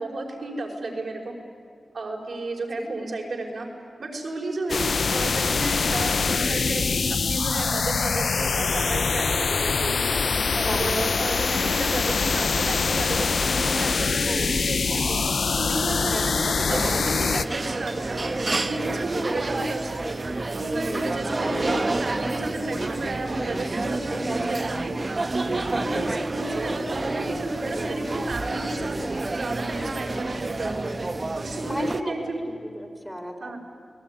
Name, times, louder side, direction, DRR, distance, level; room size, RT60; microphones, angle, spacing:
voice 1, 0.0-1.3 1.9-3.7 4.0-10.0 10.5-15.2 15.6-18.2 18.6-20.2 20.5-24.9 25.3-29.0 29.3-30.9 31.4-32.4 33.4-33.6, right 2 dB, 70° right, -1 dB, 5.4 m, -32 dB
sound 1, 4.7-17.4, left 5 dB, 75° left, 0.7 m, -24 dB
voice 2, 10.7-11.1 14.3-14.5 16.1-16.4 19.2-19.5 31.6-33.6, equal, 5° left, 4 dB, 3.7 m, -35 dB
sound 2, 16.7-32.0, right 2 dB, 45° right, 1.2 m, -29 dB
29.5 x 19.0 x 9.8 m, 2.2 s
cardioid pair, 55°, 0 cm